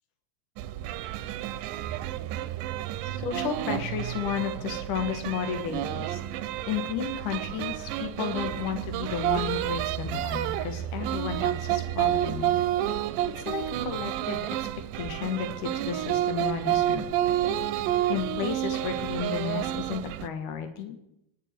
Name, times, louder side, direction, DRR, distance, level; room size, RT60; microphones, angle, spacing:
sound 1, 0.6-20.3, right 12 dB, 85° right, 2.2 m, -30 dB
voice 1, 3.0-6.2 6.7-12.5 13.4-14.7 15.0-17.3 17.7-21.0, left 8 dB, 80° left, 7 dB, 2.9 m, -33 dB
26.0 x 10.5 x 4.4 m, 0.85 s
omnidirectional pair, 3.6 m